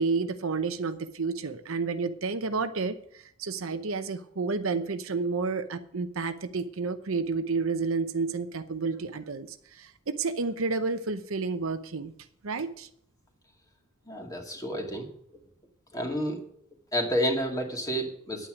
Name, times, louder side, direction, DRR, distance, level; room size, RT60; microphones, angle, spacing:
voice 1, 0.0-3.0 3.4-12.1 12.4-12.9, right 4 dB, 70° right, 9 dB, 0.8 m, -30 dB
voice 2, 14.1-15.1 15.9-16.4 16.9-18.5, equal, 15° left, 1 dB, 2.2 m, -30 dB
9.8 x 8.8 x 6.2 m, 0.67 s
head